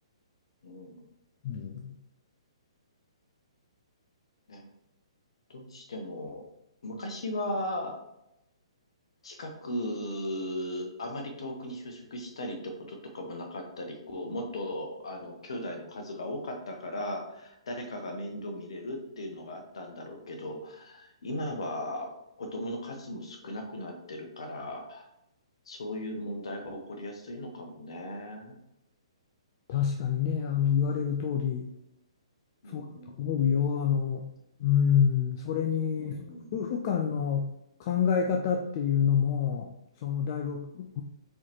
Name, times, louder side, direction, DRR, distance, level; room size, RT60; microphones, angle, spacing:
voice 1, 0.6-1.0 4.5-4.7 5.5-6.4 6.8-7.9 9.2-22.1 22.4-25.1 25.7-28.5 32.6-33.3 36.0-36.5, left 1 dB, 60° left, 3 dB, 1.0 m, -37 dB
voice 2, 1.4-1.9 29.7-31.7 32.7-32.9 33.2-34.3 34.6-36.2 36.5-37.5 37.8-41.0, left 8 dB, 40° left, 2 dB, 0.4 m, -27 dB
4.1 x 3.9 x 2.9 m, 0.85 s
figure-of-eight pair, 125°, 3 cm